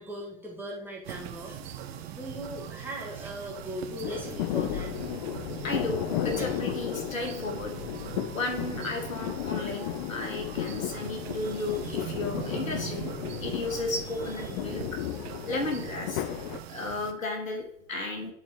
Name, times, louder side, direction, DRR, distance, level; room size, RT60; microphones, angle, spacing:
voice 1, 0.0-5.7 6.4-6.6 10.5-11.1 11.4-12.1 14.4-14.5, right 1 dB, 5° right, -4 dB, 1.8 m, -41 dB
sound 1, 1.0-17.1, right 10 dB, 50° right, 0.8 m, -41 dB
sound 2, 4.0-16.6, left 12 dB, 40° left, 0.5 m, -34 dB
voice 2, 5.6-7.9 8.3-13.1 13.4-16.2 16.7-18.3, left 2 dB, 80° left, 3 dB, 1.5 m, -34 dB
10.5 x 4.2 x 3.1 m, 0.66 s
figure-of-eight pair, 95°, 40 cm